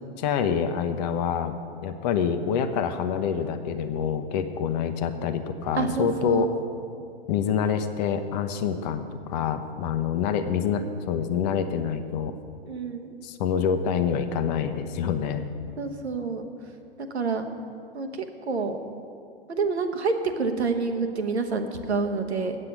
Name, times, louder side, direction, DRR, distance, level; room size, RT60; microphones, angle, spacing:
voice 1, 0.2-1.6 1.8-6.5 7.3-12.3 13.2-15.5, left 7 dB, 40° left, 9 dB, 0.8 m, -26 dB
voice 2, 5.7-6.4 12.6-13.1 15.8-16.4 17.0-17.5 17.9-18.8 19.5-22.6, right 4 dB, 80° right, 5 dB, 1.2 m, -28 dB
8.2 x 7.6 x 8.7 m, 2.4 s
figure-of-eight pair, 110°, 33 cm